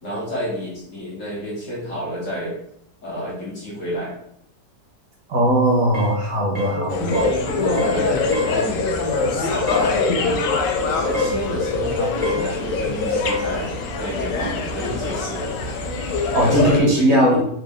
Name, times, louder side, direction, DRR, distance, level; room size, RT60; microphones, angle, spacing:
voice 1, 0.0-2.6 3.0-4.1 6.7-10.6 10.9-15.5 16.4-17.2, equal, 50° left, -5 dB, 1.5 m, -29 dB
voice 2, 5.3-7.0 16.3-17.4, right 1 dB, 60° right, -2 dB, 1.1 m, -18 dB
sound 1, 5.9-6.2 6.6-6.8 7.1-7.4 7.8-8.0 8.3-8.6 9.7-9.9 11.1-11.4 12.2-12.5 13.2-13.5, left 2 dB, 40° right, 0.7 m, -26 dB
sound 2, 6.9-16.8, left 4 dB, 80° left, 1.3 m, -23 dB
4.2 x 2.4 x 3.5 m, 0.71 s
omnidirectional pair, 1.9 m